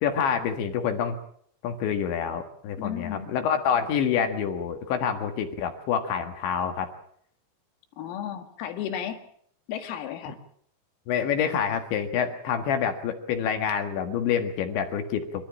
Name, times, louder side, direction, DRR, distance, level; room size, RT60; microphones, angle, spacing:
voice 1, 0.0-1.2 1.6-6.9 10.3-10.4 11.1-15.4, left 7 dB, 65° left, 6 dB, 3.7 m, -27 dB
voice 2, 2.8-3.3 8.0-9.2 9.7-10.4, left 9 dB, 90° left, 7 dB, 4.7 m, -34 dB
26.5 x 13.5 x 8.6 m, 0.66 s
omnidirectional pair, 6.0 m